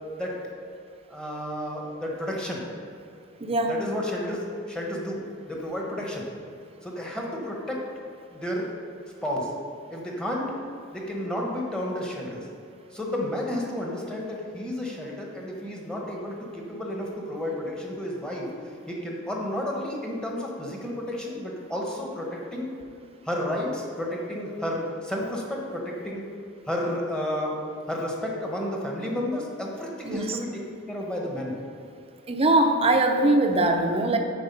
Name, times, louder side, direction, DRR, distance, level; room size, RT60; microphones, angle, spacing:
voice 1, 1.1-2.6 3.7-5.2 5.5-6.2 6.8-7.8 8.3-8.7 9.2-9.5 9.9-10.5 10.9-12.4 12.9-18.5 18.9-22.7 23.2-26.2 26.7-27.6 27.9-30.6 30.9-31.5, left 1 dB, 5° left, -2 dB, 1.2 m, -31 dB
voice 2, 3.4-3.7 30.0-30.4 32.3-34.2, right 2 dB, 30° right, 4 dB, 0.7 m, -22 dB
8.9 x 4.7 x 5.4 m, 2.4 s
head